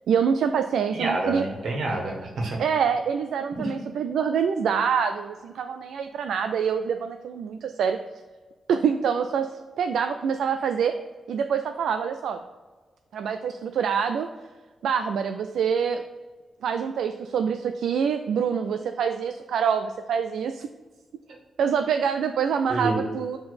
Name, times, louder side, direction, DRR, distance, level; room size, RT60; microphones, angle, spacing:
voice 1, 0.1-1.4 2.6-8.0 8.7-9.5 9.8-10.9 11.3-12.4 13.1-14.3 14.8-16.0 16.6-20.7 21.6-23.4, right 7 dB, 85° right, 7 dB, 0.3 m, -25 dB
voice 2, 0.9-2.6 3.5-3.7 22.7-22.9, right 2 dB, 65° right, 0 dB, 1.6 m, -28 dB
6.6 x 3.8 x 4.2 m, 1.4 s
wide cardioid pair, 155°, 0 cm